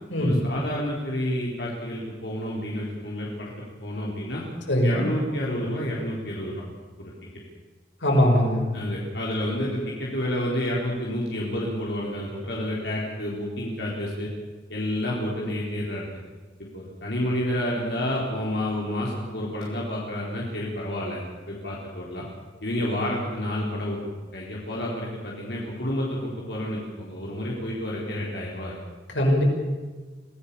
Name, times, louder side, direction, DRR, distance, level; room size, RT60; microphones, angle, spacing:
voice 1, 0.2-4.4 4.8-6.6 7.0-7.1 8.7-14.3 14.7-16.1 16.7-21.2 21.5-22.2 22.6-24.0 24.3-28.8, left 1 dB, 65° left, -4 dB, 4.2 m, -29 dB
voice 2, 4.7-5.1 8.0-8.7 29.1-29.4, equal, 90° left, 0 dB, 6.4 m, -20 dB
25.5 x 16.0 x 7.1 m, 1.4 s
head